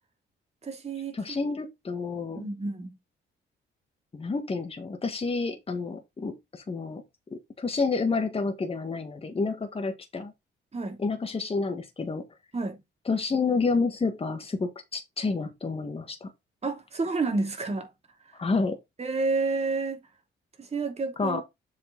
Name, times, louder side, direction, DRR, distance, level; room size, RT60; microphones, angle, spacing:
voice 1, 0.6-1.4 2.3-3.0 10.7-11.0 12.5-12.8 16.6-17.9 18.3-18.4 19.0-20.0 20.6-21.4, right 3 dB, 30° right, 2.9 m, -30 dB
voice 2, 1.1-2.5 4.1-7.0 7.3-10.3 11.0-12.3 13.1-16.3 18.4-18.8 21.2-21.4, left 4 dB, 30° left, 1.8 m, -29 dB
7.4 x 5.0 x 4.0 m
cardioid pair, 90°, 20 cm